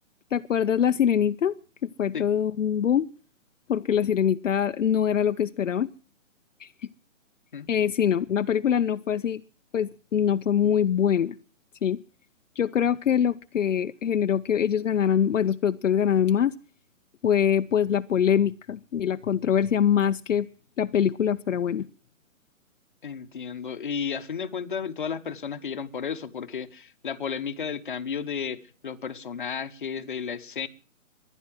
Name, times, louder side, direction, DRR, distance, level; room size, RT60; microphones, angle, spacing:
voice 1, 0.3-1.5 1.8-3.1 3.7-5.9 6.6-6.7 7.7-9.4 9.7-11.4 11.8-12.0 12.6-16.5 17.2-20.5 20.8-21.9, left 8 dB, 65° left, 0.6 m, -23 dB
voice 2, 23.0-30.7, left 6 dB, 40° left, 1.0 m, -33 dB
15.5 x 11.0 x 7.6 m
hypercardioid pair, 175°, 40 cm